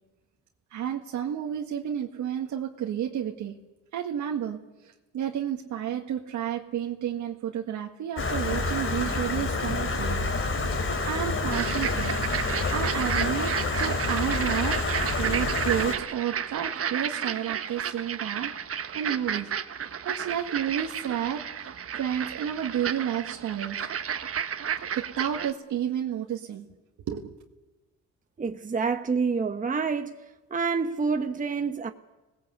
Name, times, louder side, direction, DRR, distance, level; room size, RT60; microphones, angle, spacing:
voice 1, 0.7-3.6 3.9-4.6 4.8-10.2 10.6-10.8 11.0-12.2 12.7-14.8 15.2-18.5 18.9-19.5 20.0-23.8 24.9-26.7 27.0-27.4, right 9 dB, 75° right, 1.8 m, -31 dB
Stream, 8.2-15.9, left 3 dB, 45° left, 3.4 m, -28 dB
sound 1, 11.5-25.5, right 8 dB, 50° right, 1.3 m, -32 dB
voice 2, 28.4-30.2 30.5-31.9, right 5 dB, 25° right, 1.2 m, -27 dB
26.5 x 19.0 x 8.2 m
cardioid pair, 90°, 30 cm